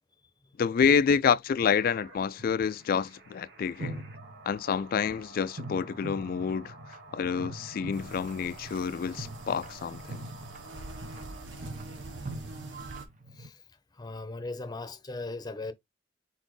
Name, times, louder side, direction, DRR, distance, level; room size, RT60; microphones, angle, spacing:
voice 1, 0.6-4.0 4.5-6.7 7.1-10.3, left 6 dB, 50° left, 0.3 m, -28 dB
sound 1, 1.6-11.7, right 3 dB, 65° right, 1.1 m, -52 dB
sound 2, 2.4-3.0 3.8-4.8 5.6-13.5, right 2 dB, 45° right, 0.7 m, -43 dB
sound 3, 7.9-13.0, right 3 dB, 90° right, 1.0 m, -45 dB
voice 2, 13.3-13.6 13.9-15.7, left 2 dB, 20° left, 0.7 m, -38 dB
4.1 x 4.0 x 3.1 m
head